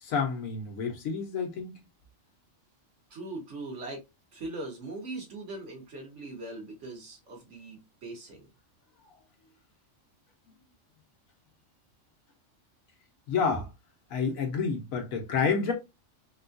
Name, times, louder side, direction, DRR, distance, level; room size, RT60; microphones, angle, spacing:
voice 1, 0.0-1.8 13.3-13.7 14.1-15.7, left 5 dB, 85° left, 1.3 m, -29 dB
voice 2, 3.1-4.0 4.3-8.4, right 2 dB, 65° right, 1.3 m, -40 dB
3.5 x 2.3 x 2.5 m
omnidirectional pair, 1.4 m